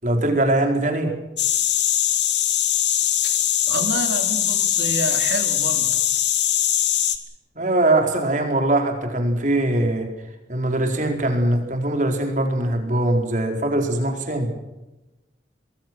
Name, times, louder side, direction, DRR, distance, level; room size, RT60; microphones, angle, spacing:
voice 1, 0.0-1.1 7.6-10.1 10.5-14.5, right 1 dB, 40° right, 3 dB, 4.6 m, -21 dB
sound 1, 1.4-7.2, left 11 dB, 70° left, 2.3 m, -21 dB
voice 2, 3.7-6.0, right 2 dB, 75° right, 5 dB, 3.7 m, -28 dB
24.5 x 22.0 x 6.3 m, 1.0 s
head